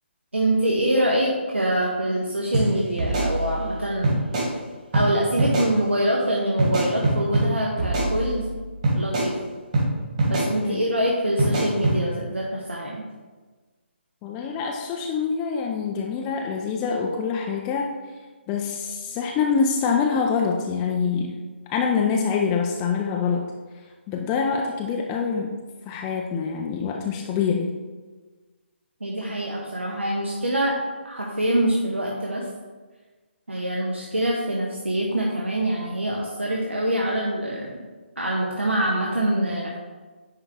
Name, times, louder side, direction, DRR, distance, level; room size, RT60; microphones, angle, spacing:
voice 1, 0.3-4.1 4.9-8.6 8.9-9.4 10.3-13.0 29.0-30.8 31.0-32.5 33.5-37.7 38.2-39.7, right 1 dB, 75° right, -2 dB, 1.1 m, -25 dB
sound 1, 2.5-2.7 3.0-3.7 4.0-4.5 4.9-5.1 5.4-5.7 6.6-7.5 7.8-8.5 8.8-9.3 9.7-9.9 10.2-10.5 11.4-12.0, right 2 dB, 35° right, 2.2 m, -23 dB
voice 2, 14.2-17.9 18.5-21.4 21.7-23.5 24.1-25.6 25.9-27.8, left 6 dB, 15° left, 0 dB, 0.4 m, -25 dB
9.9 x 3.8 x 3.4 m, 1.3 s
figure-of-eight pair, 145°, 7 cm